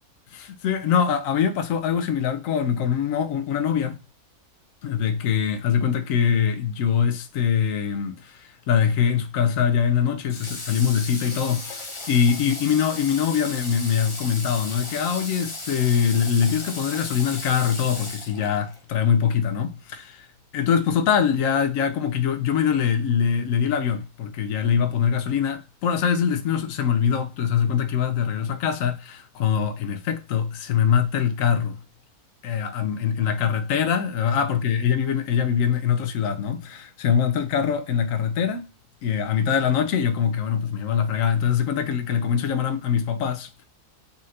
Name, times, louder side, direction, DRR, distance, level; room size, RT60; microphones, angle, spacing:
voice 1, 0.3-4.0 4.8-20.3 20.5-31.8 32.4-38.7 39.0-43.6, left 7 dB, 70° left, 1.0 m, -23 dB
Water / Water tap faucet, 10.3-18.8, left 2 dB, 35° left, 0.5 m, -36 dB
4.2 x 2.5 x 4.1 m
omnidirectional pair, 1.6 m